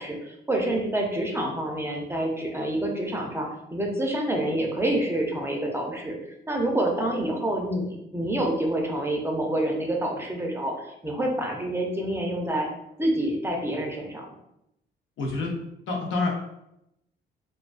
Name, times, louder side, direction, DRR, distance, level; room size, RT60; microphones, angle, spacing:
voice 1, 0.0-6.2 6.5-12.7 13.0-14.3, right 1 dB, 10° right, 0 dB, 0.5 m, -27 dB
voice 2, 15.2-15.6 15.9-16.3, left 3 dB, 80° left, 0 dB, 0.7 m, -27 dB
2.3 x 2.2 x 2.3 m, 0.82 s
cardioid pair, 90°, 20 cm